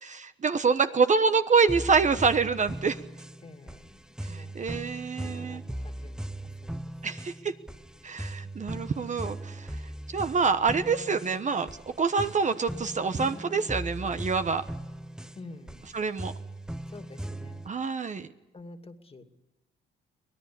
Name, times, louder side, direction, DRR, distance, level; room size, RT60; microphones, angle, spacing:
voice 1, 0.0-3.0 4.2-5.6 7.0-7.5 8.0-9.7 10.1-11.7 12.0-14.6 15.9-16.3 17.7-18.3, right 5 dB, 35° right, 10 dB, 1.1 m, -26 dB
sound 1, 1.7-17.7, right 1 dB, 5° right, 0.7 m, -39 dB
voice 2, 3.4-4.0 4.3-4.5 5.2-5.6 6.0-6.4 6.6-6.8 15.4-15.9 16.9-17.6 18.5-19.2, left 3 dB, 30° left, 7 dB, 2.4 m, -47 dB
24.5 x 18.0 x 8.5 m, 1.1 s
cardioid pair, 90°, 20 cm